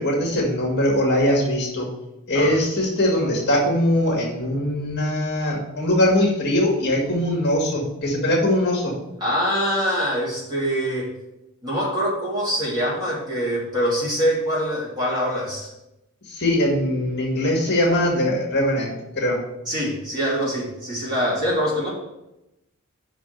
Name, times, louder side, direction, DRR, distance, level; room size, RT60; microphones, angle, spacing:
voice 1, 0.0-1.9 2.3-8.9 16.3-19.4, left 1 dB, 50° left, -2 dB, 1.9 m, -21 dB
voice 2, 9.2-11.1 11.6-15.7 19.7-21.9, equal, 20° right, -7 dB, 2.9 m, -24 dB
5.9 x 5.0 x 6.6 m, 0.92 s
head